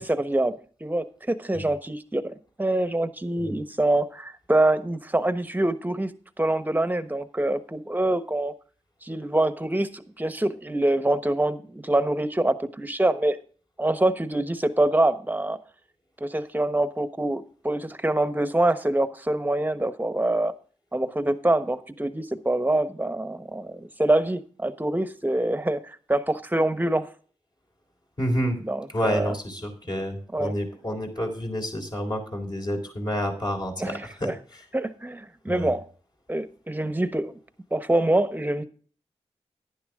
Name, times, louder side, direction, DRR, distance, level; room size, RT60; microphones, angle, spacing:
voice 1, 0.0-6.1 6.4-8.5 9.0-13.4 13.8-15.6 16.2-20.5 20.9-27.1 28.6-29.3 30.3-30.5 33.8-34.3 34.7-35.8 36.3-37.4 37.7-38.6, right 1 dB, 15° right, 11 dB, 1.2 m, -25 dB
voice 2, 28.2-28.6 28.9-34.6 35.5-35.7, equal, 40° left, 2 dB, 3.9 m, -29 dB
11.0 x 10.0 x 3.7 m, 0.42 s
cardioid pair, 50°, 11 cm